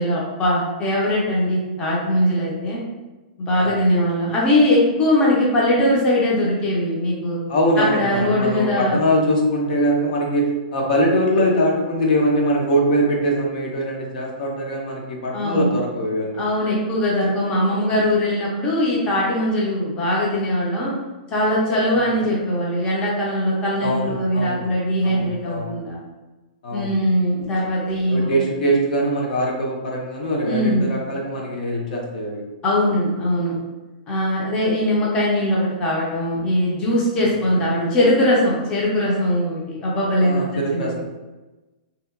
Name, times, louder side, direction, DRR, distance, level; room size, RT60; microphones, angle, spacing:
voice 1, 0.0-2.8 3.4-7.4 7.8-9.0 15.3-15.7 16.4-20.9 21.3-26.0 26.7-28.3 30.5-30.9 32.6-33.6 34.1-40.4 40.7-40.9, left 1 dB, 15° left, -5 dB, 0.5 m, -20 dB
voice 2, 7.5-16.4 22.2-22.3 23.8-24.7 25.0-25.7 26.6-26.9 28.1-32.4 37.4-37.6 40.2-41.0, equal, 60° left, -1 dB, 0.6 m, -22 dB
2.7 x 2.2 x 2.4 m, 1.2 s
hypercardioid pair, 160°, 5 cm